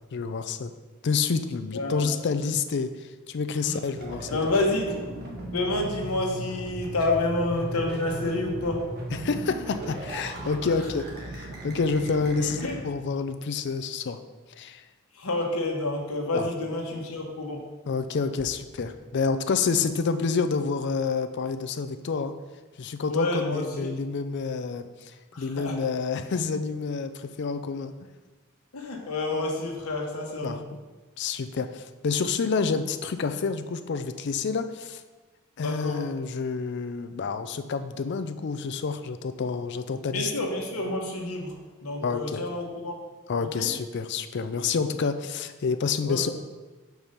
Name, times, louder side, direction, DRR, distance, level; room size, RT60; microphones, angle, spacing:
voice 1, 0.1-0.7 1.0-4.4 9.1-14.2 14.6-14.8 16.3-16.5 17.9-22.3 22.8-27.9 30.4-30.6 31.2-35.0 35.6-40.3 42.0-42.4 43.3-46.3, left 5 dB, 50° left, 9 dB, 0.4 m, -28 dB
voice 2, 1.7-2.1 3.6-3.8 4.3-4.9 5.5-8.8 12.4-12.8 15.2-17.6 23.1-23.9 25.3-25.7 28.7-30.6 35.6-36.0 40.1-41.5 41.8-42.9 43.6-43.7 46.0-46.3, left 2 dB, 85° left, 0 dB, 1.2 m, -29 dB
sound 1, 3.9-12.8, right 1 dB, 45° right, 1.4 m, -37 dB
5.1 x 4.6 x 5.5 m, 1.3 s
head